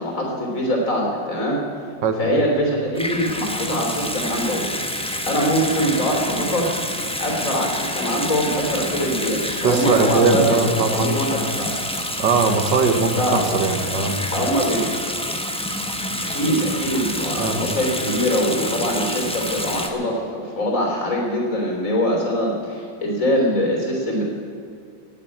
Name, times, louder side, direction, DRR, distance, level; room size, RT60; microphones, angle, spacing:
voice 1, 0.0-1.6 2.2-4.6 5.3-6.7 7.2-10.6 10.9-11.7 13.2-13.5 14.3-14.8 16.3-24.2, equal, 45° left, 0 dB, 3.8 m, -23 dB
Water tap faucet / Sink (filling or washing) / Bathtub (filling or washing), 2.9-19.9, equal, 5° left, 0.7 m, -28 dB
voice 2, 9.6-11.2 12.2-14.2 17.4-17.6, right 4 dB, 80° right, 6 dB, 1.9 m, -20 dB
18.5 x 7.9 x 8.6 m, 2.5 s
omnidirectional pair, 1.9 m